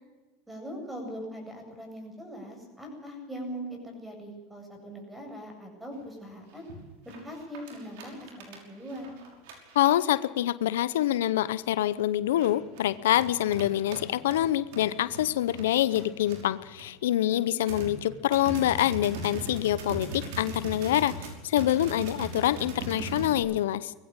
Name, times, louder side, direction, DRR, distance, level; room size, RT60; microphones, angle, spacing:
voice 1, 0.5-6.7 7.0-9.1 17.1-17.5, equal, 10° right, 4 dB, 7.8 m, -41 dB
sound 1, 6.0-6.1 6.5-6.8 7.1-10.3 10.9-11.0 11.4-11.7 12.2-16.9 17.2-17.3 17.7-23.4, right 2 dB, 70° right, 5.6 m, -40 dB
voice 2, 9.7-23.9, left 13 dB, 85° left, 17 dB, 0.7 m, -26 dB
20.5 x 15.5 x 8.9 m, 1.2 s
supercardioid pair, 110°, 0 cm